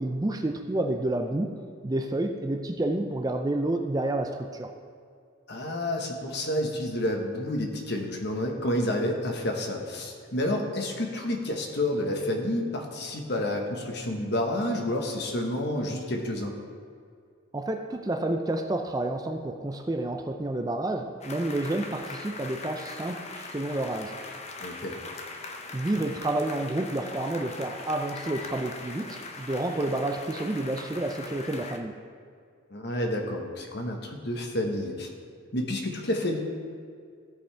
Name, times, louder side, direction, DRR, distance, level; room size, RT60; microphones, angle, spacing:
voice 1, 0.0-1.5 1.8-4.7 17.5-24.1 25.7-31.9, right 1 dB, 20° right, 5 dB, 0.4 m, -29 dB
voice 2, 5.5-16.5 24.6-24.9 32.7-35.1 35.5-36.4, left 1 dB, 55° left, 2 dB, 1.2 m, -29 dB
Audience applause big theatre, 21.2-31.8, left 3 dB, 30° left, 0.6 m, -41 dB
15.5 x 5.4 x 3.4 m, 2.2 s
head